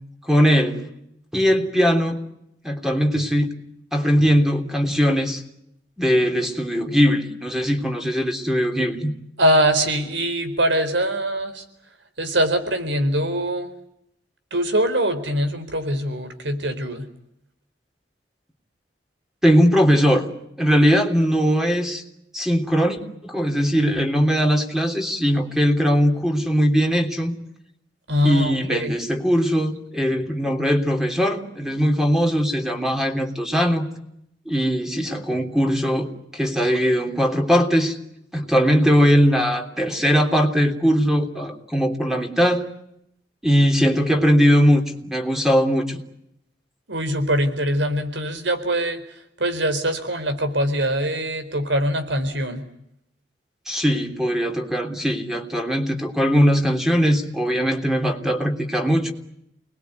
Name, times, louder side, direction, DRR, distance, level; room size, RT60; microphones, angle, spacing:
voice 1, 0.2-0.9 1.3-2.2 2.6-3.5 3.9-5.4 6.0-9.1 19.4-20.3 20.6-22.0 22.3-27.3 28.2-33.9 34.4-38.0 38.3-42.7 43.4-46.0 53.7-59.1, equal, 5° right, 4 dB, 3.3 m, -20 dB
voice 2, 9.4-11.6 12.2-13.7 14.5-17.1 28.1-29.0 46.9-49.0 49.4-52.6, equal, 90° right, 9 dB, 4.3 m, -23 dB
29.0 x 20.5 x 9.6 m, 0.78 s
head